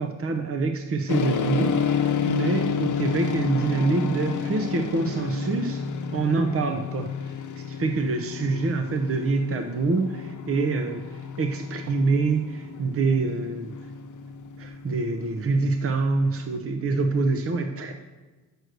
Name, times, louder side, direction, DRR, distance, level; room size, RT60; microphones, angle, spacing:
voice 1, 0.0-5.8 6.1-13.7 14.6-17.9, right 3 dB, 35° right, 5 dB, 0.8 m, -26 dB
sound 1, 1.1-16.6, left 6 dB, 50° left, 0.9 m, -30 dB
6.4 x 6.4 x 6.5 m, 1.2 s
cardioid pair, 60°, 38 cm